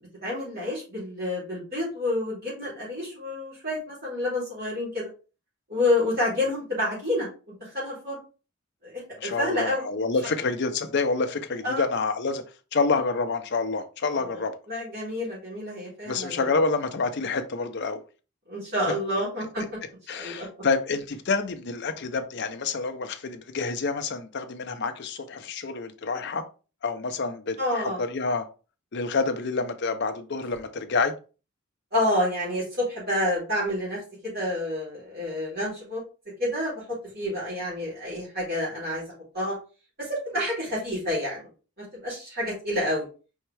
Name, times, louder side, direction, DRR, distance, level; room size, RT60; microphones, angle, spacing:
voice 1, 0.2-5.1 5.7-8.2 8.8-9.8 11.6-11.8 14.7-16.4 18.5-19.6 20.1-20.5 27.6-28.0 31.9-36.0 36.4-39.0 39.3-39.6 40.0-41.5 41.8-43.1, left 1 dB, 45° right, 2.7 m, -29 dB
voice 2, 9.2-12.4 12.7-14.5 16.1-18.0 20.1-26.4 26.8-28.5 28.9-31.1, left 4 dB, 50° left, 0.6 m, -28 dB
4.5 x 3.5 x 3.3 m
head